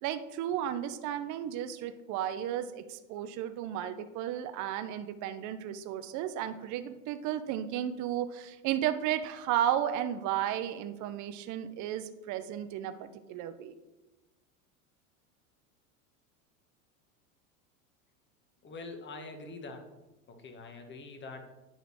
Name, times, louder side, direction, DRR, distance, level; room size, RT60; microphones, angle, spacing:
voice 1, 0.0-13.7, right 11 dB, 45° right, 10 dB, 0.8 m, -34 dB
voice 2, 18.6-19.9 20.3-21.5, left 3 dB, 25° left, 5 dB, 1.5 m, -44 dB
9.3 x 4.0 x 6.3 m, 1.0 s
hypercardioid pair, 105°, 41 cm